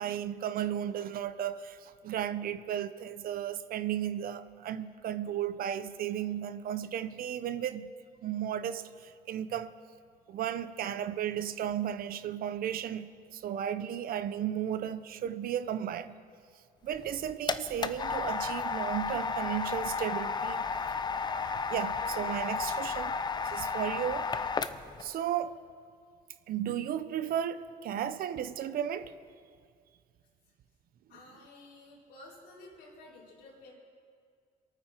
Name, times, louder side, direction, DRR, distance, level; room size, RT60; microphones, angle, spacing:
voice 1, 0.0-7.9 8.2-9.7 10.3-16.2 16.8-20.6 21.7-23.1 23.4-24.3 25.0-25.6 26.5-29.1, right 10 dB, 60° right, 0.7 m, -34 dB
sound 1, 16.9-25.0, left 5 dB, 25° left, 0.6 m, -33 dB
voice 2, 31.1-33.7, left 2 dB, 80° left, 4.3 m, -52 dB
23.5 x 9.3 x 4.4 m
cardioid pair, 110°, 17 cm